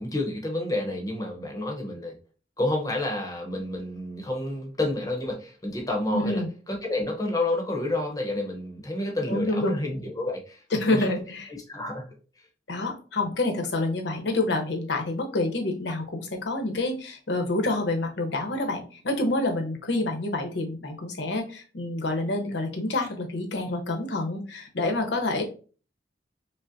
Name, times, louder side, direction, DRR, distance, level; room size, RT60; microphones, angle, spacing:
voice 1, 0.0-2.1 2.6-11.1 11.5-12.5, left 1 dB, 20° left, 1 dB, 0.8 m, -30 dB
voice 2, 6.1-6.5 9.3-9.7 10.7-11.5 12.7-25.4, left 2 dB, 70° left, 3 dB, 0.8 m, -28 dB
5.4 x 2.1 x 2.5 m, 0.38 s
head